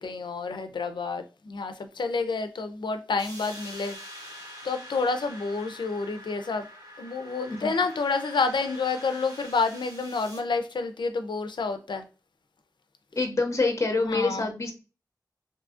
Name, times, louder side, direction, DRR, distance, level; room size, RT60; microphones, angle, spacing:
voice 1, 0.0-4.0 4.6-6.7 7.0-12.0 14.1-14.5, left 4 dB, 85° left, 0.4 m, -29 dB
sound 1, 3.2-10.4, equal, 55° right, 1.1 m, -45 dB
voice 2, 13.2-14.7, left 3 dB, 40° left, 0.6 m, -26 dB
2.7 x 2.5 x 2.4 m
wide cardioid pair, 60°, 8 cm